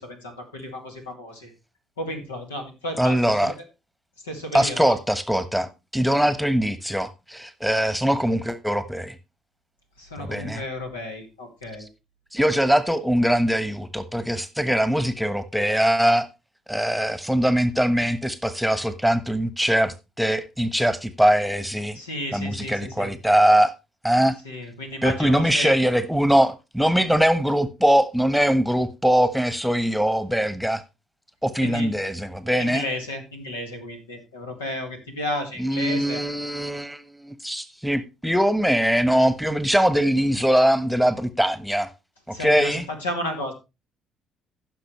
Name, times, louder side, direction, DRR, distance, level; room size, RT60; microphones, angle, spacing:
voice 1, 0.0-1.5 2.0-3.6 4.2-5.0 10.0-11.9 21.9-23.2 24.4-25.8 31.6-31.9 32.6-36.2 42.3-43.5, left 1 dB, 85° left, 2.1 m, -33 dB
voice 2, 3.0-3.5 4.5-9.1 10.2-10.6 12.3-16.3 16.7-22.0 22.3-23.7 24.0-24.4 25.0-30.8 31.4-32.8 35.6-41.9 42.3-42.8, equal, ahead, 1.2 m, -22 dB
15.5 x 6.3 x 3.2 m
hypercardioid pair, 50°, 0 cm